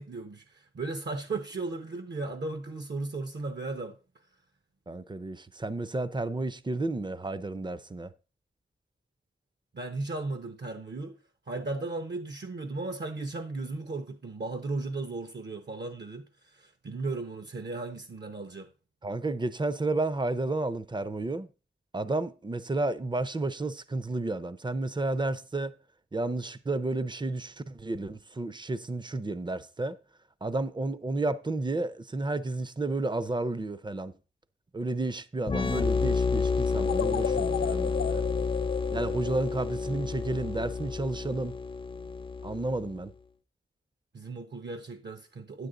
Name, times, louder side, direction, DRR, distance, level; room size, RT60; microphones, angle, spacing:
voice 1, 0.0-4.0 9.7-11.2 11.5-16.2 16.5-18.7 44.1-45.7, right 3 dB, 55° right, 0.8 m, -36 dB
voice 2, 4.9-8.1 19.0-21.5 21.9-25.7 26.1-30.0 30.4-34.1 34.7-38.3 38.9-41.6 42.4-43.1, right 2 dB, 20° right, 0.6 m, -31 dB
sound 1, 35.5-43.0, left 4 dB, 25° left, 0.4 m, -30 dB
sound 2, 36.8-40.0, left 8 dB, 85° left, 0.5 m, -34 dB
9.7 x 8.2 x 3.8 m
wide cardioid pair, 100°, 21 cm